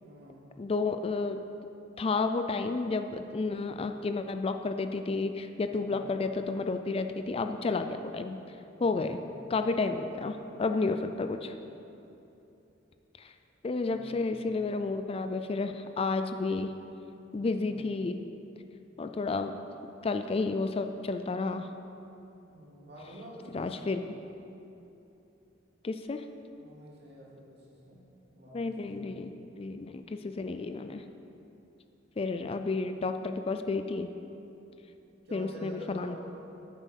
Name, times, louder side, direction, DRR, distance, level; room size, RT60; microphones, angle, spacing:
voice 1, 0.0-0.5 5.7-6.0 8.7-9.2 13.9-14.2 14.5-14.6 17.5-17.9 22.5-23.9 26.6-29.4 35.2-36.2, right 1 dB, 60° right, -5 dB, 2.6 m, -49 dB
voice 2, 0.6-1.4 2.0-8.4 8.8-9.2 9.5-11.5 13.2-13.3 13.6-16.7 17.3-18.2 19.0-19.5 20.0-21.7 23.5-24.0 25.8-26.2 28.5-31.0 32.2-34.1 35.3-36.2, left 3 dB, 30° left, 8 dB, 0.4 m, -31 dB
9.2 x 7.5 x 6.5 m, 2.9 s
head